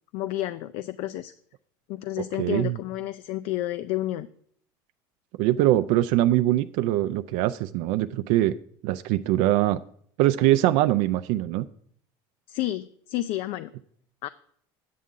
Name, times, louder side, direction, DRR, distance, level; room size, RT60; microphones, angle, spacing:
voice 1, 0.1-1.3 1.9-4.3 12.5-13.7 14.2-14.3, left 15 dB, 65° left, 12 dB, 0.4 m, -30 dB
voice 2, 2.4-2.8 5.4-8.5 8.8-9.8 10.2-11.7, right 14 dB, 70° right, 10 dB, 0.4 m, -22 dB
9.4 x 8.4 x 3.7 m, 0.63 s
supercardioid pair, 120°, 11 cm